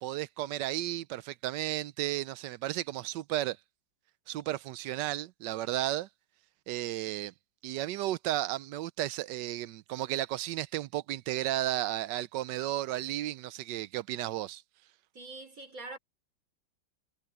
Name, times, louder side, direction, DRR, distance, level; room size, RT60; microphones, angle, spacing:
voice 1, 0.0-3.6 4.3-6.1 6.7-7.3 7.6-14.6, right 14 dB, 75° right, 1.2 m, -33 dB
voice 2, 15.1-16.0, right 3 dB, 45° right, 5.8 m, -44 dB
omnidirectional pair, 2.0 m